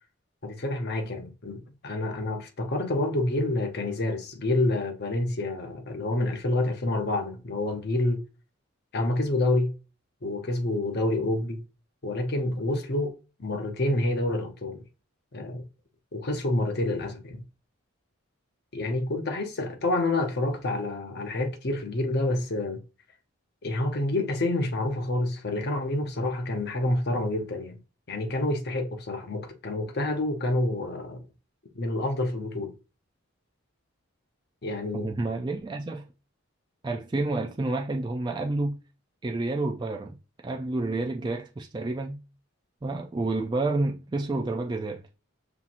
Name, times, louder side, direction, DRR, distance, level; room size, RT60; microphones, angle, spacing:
voice 1, 0.4-8.2 8.9-9.7 10.2-11.6 12.0-13.1 13.4-14.8 15.3-15.6 16.1-17.4 18.7-22.8 23.6-27.8 28.1-31.2 31.7-32.7 34.6-35.1, left 2 dB, 50° left, 0.7 m, -28 dB
voice 2, 34.9-36.0 36.8-38.8 39.2-40.2 40.4-42.2 42.8-45.0, right 2 dB, 20° right, 0.3 m, -29 dB
5.6 x 2.8 x 2.5 m
head